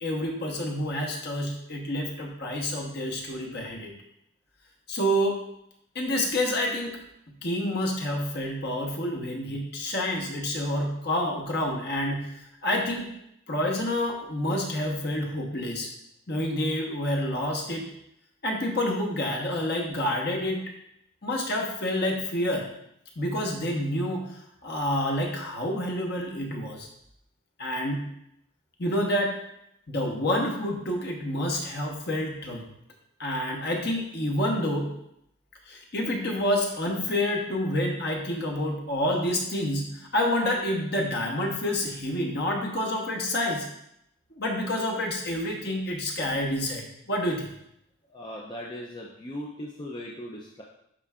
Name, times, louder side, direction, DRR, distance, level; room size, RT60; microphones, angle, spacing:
voice 1, 0.0-3.9 4.9-5.4 5.9-7.0 7.4-12.3 12.6-13.1 13.5-15.9 16.3-17.8 18.4-20.6 21.2-22.7 23.2-26.9 27.6-28.0 28.8-29.4 29.9-32.6 33.2-34.9 35.7-43.7 44.3-47.5, left 1 dB, 50° left, 0 dB, 1.2 m, -28 dB
voice 2, 48.1-50.6, equal, 20° left, -3 dB, 0.5 m, -38 dB
11.5 x 4.4 x 2.5 m, 0.77 s
head